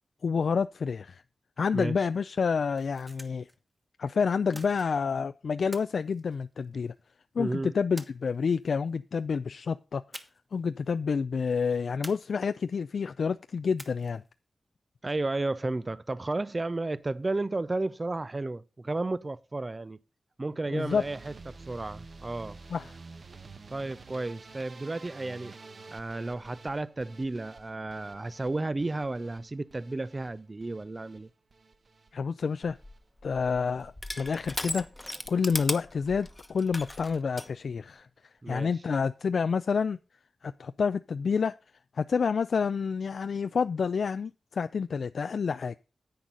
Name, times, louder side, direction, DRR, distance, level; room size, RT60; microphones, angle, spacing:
voice 1, 0.2-1.2 1.6-3.5 4.0-6.9 7.4-10.0 10.5-14.2 20.7-21.0 22.7-22.9 32.1-32.8 33.2-34.9 35.3-38.1 38.5-40.0 40.4-41.6 42.0-45.8, left 5 dB, 70° left, 0.4 m, -28 dB
sound 1, 2.7-3.6 4.5-5.2 5.7-7.0 8.0-8.7 10.1-10.6 10.9-11.0 12.0-12.8 13.8-14.3, equal, 10° right, 1.3 m, -47 dB
voice 2, 7.4-7.7 15.0-20.0 20.4-22.6 23.7-25.5 25.9-31.3 38.4-38.7, right 2 dB, 25° right, 0.5 m, -33 dB
sound 2, 20.9-33.0 33.3-33.9 34.2-34.8 35.1-35.3 35.7-35.8 36.0-36.1, right 3 dB, 50° right, 1.1 m, -50 dB
Crushing, 32.6-37.5, left 1 dB, 15° left, 1.1 m, -38 dB
10.5 x 9.0 x 3.9 m
wide cardioid pair, 130°, 0 cm